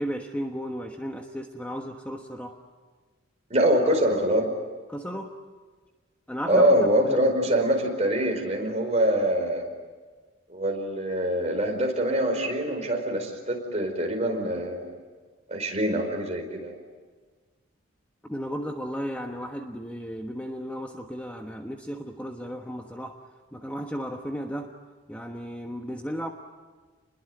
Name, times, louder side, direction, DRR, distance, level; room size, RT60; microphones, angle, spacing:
voice 1, 0.0-2.6 4.9-5.3 6.3-7.3 18.2-23.2 23.5-24.8 25.1-26.3, equal, 5° left, 3 dB, 1.2 m, -34 dB
voice 2, 3.5-4.5 6.5-9.7 10.5-14.9 15.5-16.7, right 1 dB, 35° right, 2 dB, 4.8 m, -24 dB
29.0 x 21.5 x 9.1 m, 1.4 s
head